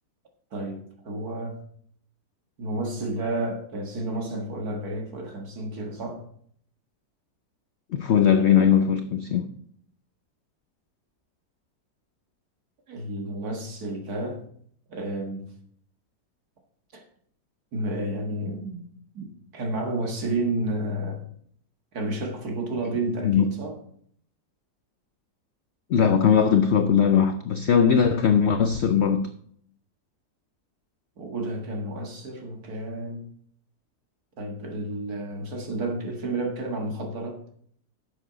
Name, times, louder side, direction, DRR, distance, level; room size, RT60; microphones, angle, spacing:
voice 1, 0.5-1.7 2.6-6.2 12.9-14.4 14.9-15.5 16.9-17.0 17.7-18.9 19.1-21.2 21.9-23.8 31.2-33.3 34.4-37.4, right 2 dB, 65° right, 2.1 m, -31 dB
voice 2, 7.9-9.5 23.2-23.4 25.9-29.3, left 7 dB, 65° left, 0.6 m, -20 dB
9.7 x 7.3 x 3.9 m
omnidirectional pair, 1.7 m